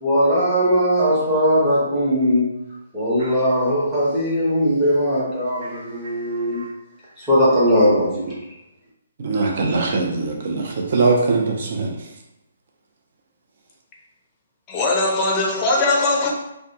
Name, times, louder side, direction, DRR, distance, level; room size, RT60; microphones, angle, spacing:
voice 1, 0.0-2.5 2.9-6.6 7.2-8.3, equal, 15° right, 1.0 m, -19 dB
voice 2, 9.2-11.9, right 3 dB, 55° right, 0.6 m, -21 dB
voice 3, 14.7-16.3, left 2 dB, 20° left, 0.5 m, -20 dB
2.3 x 2.2 x 2.8 m
hypercardioid pair, 145°, 0 cm